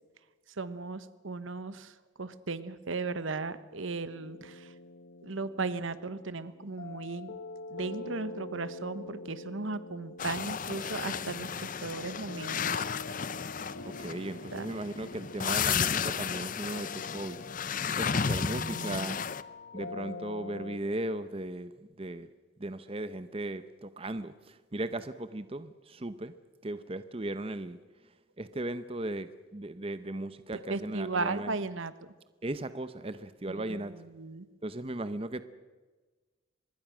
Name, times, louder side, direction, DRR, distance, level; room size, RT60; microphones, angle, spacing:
voice 1, 0.6-4.7 5.2-7.3 7.7-12.9 14.5-14.7 18.4-19.1 30.7-31.9 33.5-34.5, right 3 dB, 75° right, 14 dB, 1.1 m, -36 dB
sound 1, 4.1-20.8, left 3 dB, 65° left, 1.6 m, -45 dB
sound 2, 10.2-19.4, left 7 dB, 40° left, 0.6 m, -33 dB
voice 2, 13.9-17.4 18.0-19.2 19.7-21.7 22.0-22.3 22.6-26.3 26.6-27.8 28.4-31.5 32.4-33.9 34.6-35.4, right 1 dB, 30° right, 12 dB, 0.7 m, -37 dB
25.0 x 21.0 x 6.2 m, 1.3 s
head